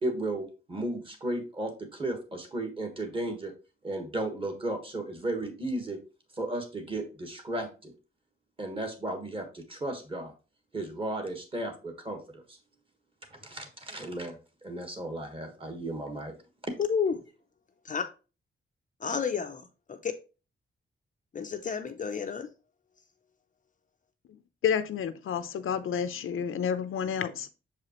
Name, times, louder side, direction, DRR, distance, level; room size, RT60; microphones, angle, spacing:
voice 1, 0.0-3.5 3.8-6.0 6.3-7.9 8.6-10.3 10.7-12.6 13.3-16.3, right 1 dB, 25° right, 1.4 m, -34 dB
voice 2, 16.8-17.2 17.8-18.1 19.0-19.6 20.0-20.1 21.3-22.5, left 6 dB, 40° left, 0.5 m, -30 dB
voice 3, 24.6-27.5, left 8 dB, 85° left, 0.6 m, -30 dB
6.7 x 4.9 x 3.0 m
wide cardioid pair, 165°, 21 cm